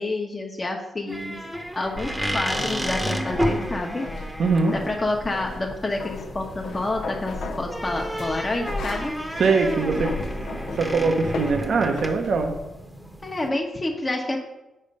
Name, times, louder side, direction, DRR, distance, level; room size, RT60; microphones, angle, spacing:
voice 1, 0.0-1.4 1.7-4.1 4.7-9.1 13.2-14.4, left 2 dB, 30° left, 0 dB, 1.0 m, -28 dB
sound 1, 1.1-13.5, equal, 5° right, 0.9 m, -32 dB
sound 2, 2.0-12.6, left 3 dB, 75° left, 0.5 m, -35 dB
voice 2, 4.4-4.8 9.4-10.2 10.7-12.6, right 4 dB, 65° right, 5 dB, 0.6 m, -22 dB
5.5 x 4.4 x 5.3 m, 0.97 s
cardioid pair, 60°, 0 cm